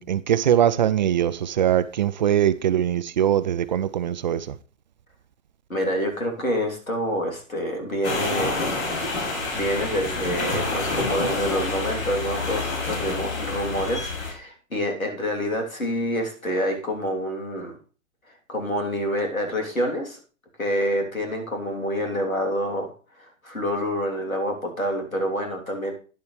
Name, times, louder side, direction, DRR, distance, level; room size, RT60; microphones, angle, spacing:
voice 1, 0.0-4.6, right 10 dB, 35° right, 0.4 m, -22 dB
voice 2, 5.7-8.7 9.5-17.7 18.5-20.2 20.6-22.9 23.2-25.9, equal, 85° left, 3.3 m, -27 dB
sound 1, 8.0-14.3, left 3 dB, 60° left, 5.7 m, -28 dB
10.5 x 10.5 x 3.2 m
figure-of-eight pair, 115°, 40 cm